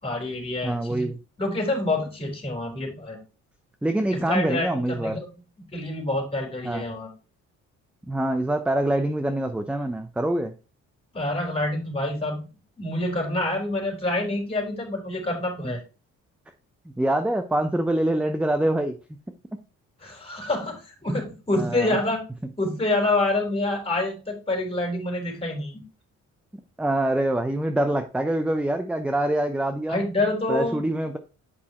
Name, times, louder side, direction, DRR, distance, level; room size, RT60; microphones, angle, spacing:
voice 1, 0.0-1.1 1.4-3.2 4.1-5.3 5.7-7.1 11.1-12.4 12.8-15.8 20.0-22.2 22.6-25.8 29.9-30.9, left 2 dB, 20° left, 0 dB, 3.7 m, -27 dB
voice 2, 0.6-1.2 3.8-5.2 6.6-6.8 8.1-10.5 15.6-15.8 17.0-18.9 21.5-22.0 26.8-30.0 30.5-31.2, right 1 dB, 5° right, 8 dB, 0.6 m, -25 dB
8.6 x 5.3 x 3.0 m, 0.33 s
cardioid pair, 90°, 30 cm